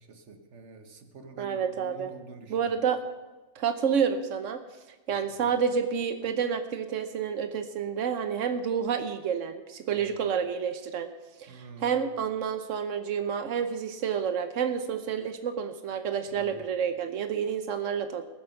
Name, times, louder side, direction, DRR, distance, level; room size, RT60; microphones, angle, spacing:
voice 1, 0.0-2.5 5.1-5.5 9.9-10.2 11.5-11.9 16.3-16.7, right 4 dB, 70° right, 7 dB, 1.5 m, -48 dB
voice 2, 1.4-2.1 2.5-3.0 3.6-4.6 5.1-11.1 11.4-18.2, right 7 dB, 85° right, 8 dB, 1.2 m, -29 dB
19.5 x 7.7 x 5.8 m, 1.2 s
omnidirectional pair, 1.3 m